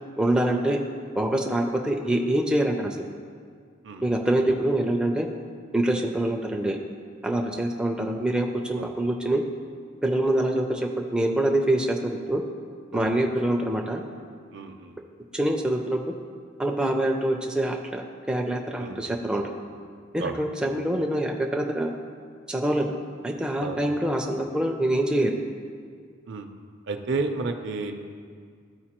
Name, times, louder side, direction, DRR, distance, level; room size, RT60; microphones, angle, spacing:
voice 1, 0.2-0.8 1.2-3.1 4.0-5.3 5.7-6.8 7.2-9.4 10.0-12.4 12.9-14.0 15.3-16.0 16.6-19.5 20.1-22.0 22.5-22.9 23.2-25.3, right 1 dB, 5° right, 1 dB, 0.4 m, -25 dB
voice 2, 14.5-15.0 18.8-19.4 20.2-20.4 23.6-23.8 26.3-26.5 26.9-27.9, right 3 dB, 60° right, 6 dB, 0.5 m, -32 dB
13.0 x 4.5 x 2.9 m, 2.1 s
head